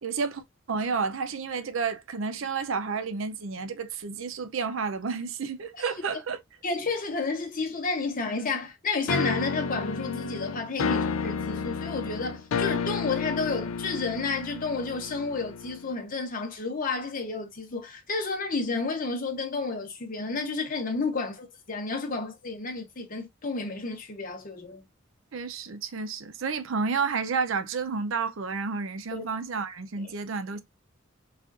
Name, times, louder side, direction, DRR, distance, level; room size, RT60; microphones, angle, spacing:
voice 1, 0.0-0.4 0.7-6.4 10.9-11.0 25.3-30.6, right 5 dB, 70° right, 0.5 m, -31 dB
voice 2, 6.6-24.8 29.1-29.3 30.0-30.1, left 3 dB, 40° left, 0.9 m, -31 dB
sound 1, 9.1-15.9, left 5 dB, 80° left, 0.4 m, -31 dB
3.6 x 2.4 x 2.4 m
head